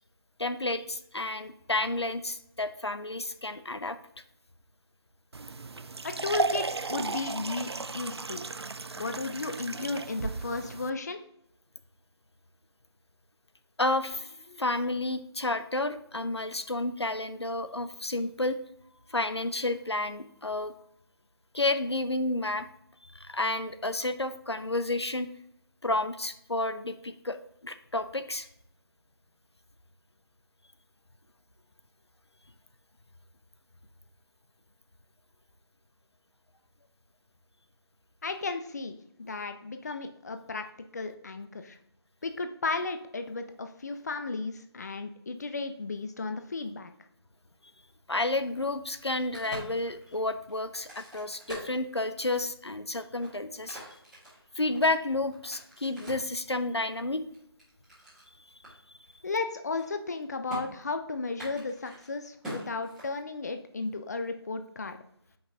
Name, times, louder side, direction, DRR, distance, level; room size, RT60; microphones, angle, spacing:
voice 1, 0.4-4.0 13.8-18.6 19.1-20.7 21.5-22.7 23.1-25.3 25.8-27.4 27.6-28.5 48.1-53.8 54.6-57.2, left 2 dB, 85° left, 9 dB, 0.7 m, -31 dB
sound 1, 5.3-10.9, right 4 dB, 75° right, 0.4 m, -34 dB
voice 2, 6.0-8.4 9.0-11.2 38.2-40.6 40.9-41.8 42.2-46.9 59.2-65.0, left 3 dB, 40° left, 8 dB, 0.5 m, -34 dB
Crack, 48.9-52.5 53.0-56.3 56.9-58.3 58.6-58.7 59.0-59.4 59.6-60.2 60.5-60.6 61.3-63.5, equal, ahead, 1.8 m, -44 dB
7.8 x 5.4 x 2.8 m, 0.73 s
figure-of-eight pair, 155°, 14 cm